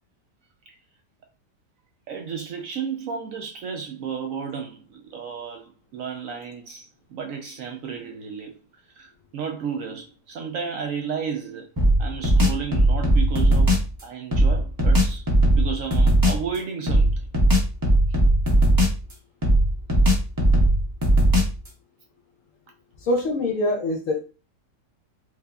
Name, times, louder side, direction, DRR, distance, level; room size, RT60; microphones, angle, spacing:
voice 1, 2.1-8.6 8.9-11.7 12.0-15.3 15.5-17.3, right 6 dB, 70° right, 0.8 m, -33 dB
sound 1, 11.8-13.9 14.3-16.4 16.9-19.1 19.4-21.7, right 1 dB, 25° right, 0.4 m, -18 dB
voice 2, 23.0-24.2, left 1 dB, 65° left, 0.9 m, -24 dB
4.6 x 2.5 x 2.2 m
omnidirectional pair, 1.8 m